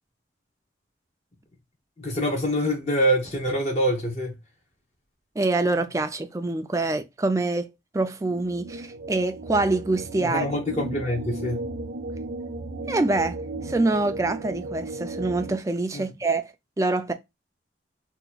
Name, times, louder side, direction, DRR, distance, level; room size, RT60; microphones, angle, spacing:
voice 1, 2.0-4.4 10.2-11.6 15.9-16.1, equal, 35° left, 0.8 m, -25 dB
voice 2, 5.4-10.5 12.9-13.4 13.6-16.5 16.8-17.1, right 2 dB, 15° right, 0.3 m, -25 dB
sound 1, 8.2-15.6, right 2 dB, 80° right, 0.6 m, -35 dB
2.8 x 2.3 x 4.0 m
head